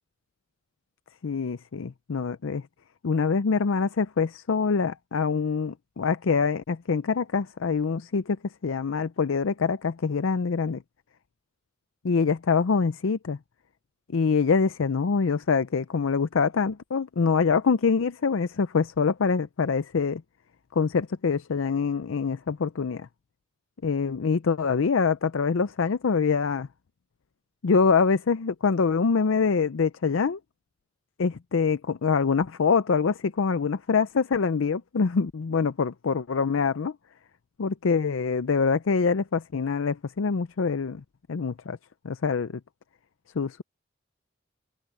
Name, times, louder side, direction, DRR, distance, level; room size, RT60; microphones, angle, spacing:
voice 1, 1.2-2.6 3.0-8.4 8.6-10.8 12.0-13.4 14.1-20.2 20.8-23.1 23.8-26.7 27.6-30.4 31.2-36.9 37.6-41.0 41.3-41.8 42.0-42.5 43.4-43.6, left 5 dB, 85° left, 0.5 m, -25 dB
head